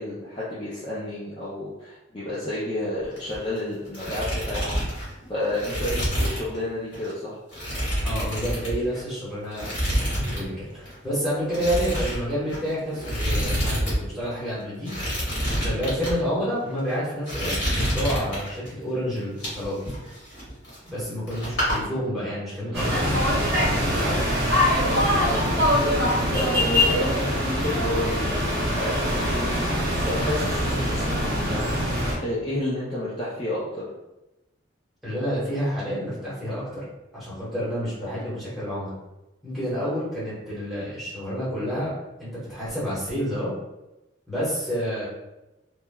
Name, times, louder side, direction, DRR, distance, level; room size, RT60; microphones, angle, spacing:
voice 1, 0.0-7.4 24.7-25.7 26.3-31.6 31.9-33.9, left 1 dB, 25° left, -9 dB, 0.4 m, -31 dB
sound 1, 3.0-3.6 3.8-6.6 6.9-7.1 7.5-9.1 9.5-10.5 10.7-10.9 11.5-14.0 14.2-14.3 14.8-16.1 16.7-16.9 17.3-18.7 19.2-21.0 21.3-21.8, equal, 65° left, 1.4 m, -28 dB
voice 2, 8.0-9.7 10.1-15.1 15.5-20.2 20.9-24.2 35.0-36.8 37.1-39.0 39.4-43.5 44.3-45.0, equal, ahead, -10 dB, 1.1 m, -29 dB
sound 2, 22.7-32.2, equal, 55° right, 0.7 m, -23 dB
3.0 x 2.1 x 2.2 m, 0.98 s
head